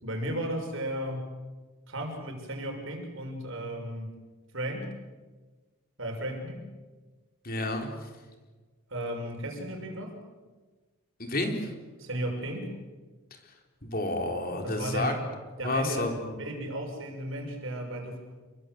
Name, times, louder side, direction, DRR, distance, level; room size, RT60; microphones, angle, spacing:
voice 1, 0.0-1.3 1.9-4.1 4.5-5.0 6.0-6.7 8.9-10.2 12.0-12.8 14.6-15.2 15.6-16.0 16.4-18.2, right 1 dB, 60° right, 3 dB, 6.3 m, -34 dB
voice 2, 7.4-7.9 11.2-11.7 13.8-15.1 15.6-16.4, left 2 dB, 40° left, 4 dB, 4.0 m, -30 dB
29.5 x 23.0 x 8.0 m, 1.3 s
head